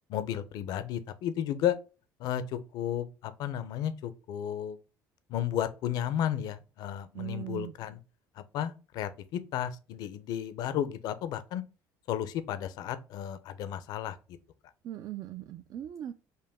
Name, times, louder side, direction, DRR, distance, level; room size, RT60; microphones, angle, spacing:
voice 1, 0.1-1.8 2.2-4.8 5.3-8.0 8.4-11.6 12.1-14.4, left 10 dB, 65° left, 0.6 m, -33 dB
voice 2, 7.1-7.7 14.8-16.1, right 13 dB, 50° right, 0.4 m, -39 dB
5.5 x 2.2 x 3.4 m
cardioid pair, 140°, 7 cm